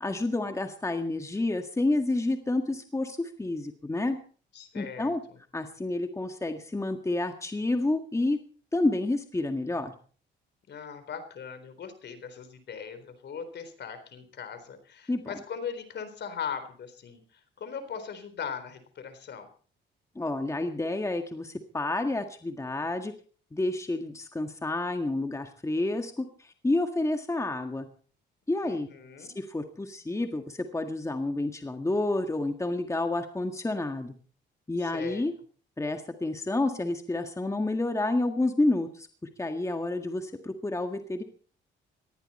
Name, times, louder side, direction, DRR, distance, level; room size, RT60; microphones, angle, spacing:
voice 1, 0.0-4.2 4.7-5.2 5.5-8.4 8.7-9.9 15.1-15.3 20.2-23.1 23.5-27.9 28.5-28.9 29.2-34.1 34.7-35.3 35.8-39.1 39.4-41.2, left 2 dB, 15° left, 6 dB, 1.8 m, -29 dB
voice 2, 4.5-5.1 10.7-17.2 17.6-19.5 28.6-29.3 34.8-35.2, left 7 dB, 60° left, 10 dB, 4.0 m, -39 dB
19.0 x 15.0 x 4.3 m, 0.43 s
cardioid pair, 90°, 20 cm